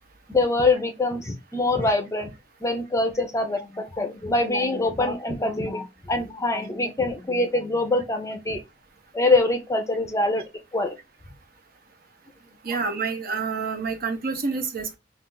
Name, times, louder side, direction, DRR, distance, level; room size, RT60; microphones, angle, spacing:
voice 1, 0.3-2.3 2.6-8.6 9.1-11.0 12.7-12.8, left 2 dB, 15° left, 0.5 m, -24 dB
voice 2, 12.6-15.0, right 4 dB, 50° right, 0.7 m, -28 dB
2.4 x 2.4 x 3.7 m
head